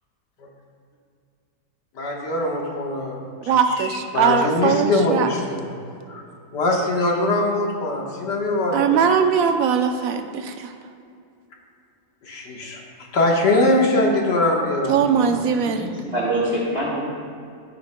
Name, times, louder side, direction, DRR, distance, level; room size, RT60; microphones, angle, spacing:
voice 1, 2.0-3.2 3.8-3.9 4.1-5.7 6.1-6.2 6.5-9.0 12.3-12.8 13.1-15.4, left 2 dB, 70° left, -1 dB, 1.9 m, -22 dB
voice 2, 3.5-5.3 8.7-10.7 14.9-15.9, right 7 dB, 65° right, 6 dB, 0.9 m, -20 dB
voice 3, 14.8-17.0, right 1 dB, 35° right, -6 dB, 1.7 m, -27 dB
14.5 x 9.0 x 2.2 m, 2.4 s
omnidirectional pair, 1.9 m